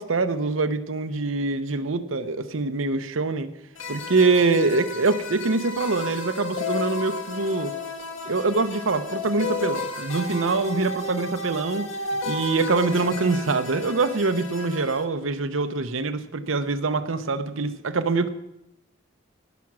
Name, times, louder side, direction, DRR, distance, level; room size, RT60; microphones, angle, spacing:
voice 1, 0.0-3.5 3.9-7.7 8.2-11.9 12.2-18.3, right 3 dB, 80° right, 10 dB, 0.8 m, -24 dB
sound 1, 3.8-15.0, left 3 dB, 85° left, 1.5 m, -33 dB
18.0 x 6.0 x 6.1 m, 0.86 s
head